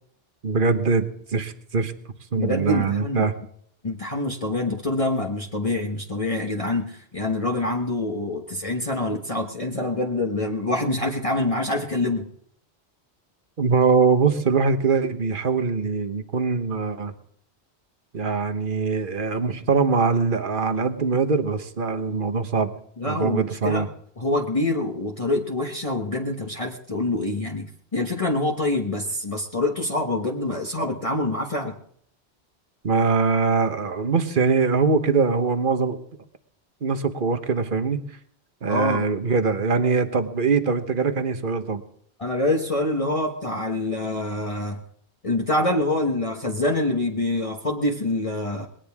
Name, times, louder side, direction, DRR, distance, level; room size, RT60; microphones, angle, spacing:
voice 1, 0.4-1.9 2.3-3.3 13.6-17.1 18.1-22.7 23.1-23.9 32.8-36.0 36.8-38.0 38.6-41.8, right 5 dB, 50° right, 8 dB, 1.4 m, -22 dB
voice 2, 2.4-3.3 3.8-12.3 23.0-23.9 24.2-31.7 38.7-39.0 42.2-44.8 45.2-48.7, left 2 dB, 30° left, 0 dB, 1.3 m, -25 dB
20.5 x 18.0 x 3.6 m, 0.66 s
omnidirectional pair, 1.1 m